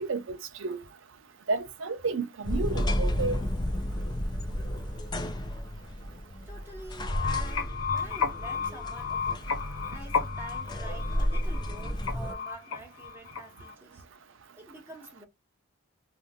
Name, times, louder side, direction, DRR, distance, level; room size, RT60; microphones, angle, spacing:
voice 1, 0.0-0.8 1.5-3.4, right 3 dB, 70° right, 0.6 m, -31 dB
sound 1, 2.4-12.3, equal, 20° left, 0.4 m, -32 dB
voice 2, 6.4-9.5 9.9-14.0 14.5-15.3, right 2 dB, 10° right, 1.3 m, -47 dB
sound 2, 6.9-13.7, left 5 dB, 90° left, 1.0 m, -33 dB
2.6 x 2.5 x 3.5 m
head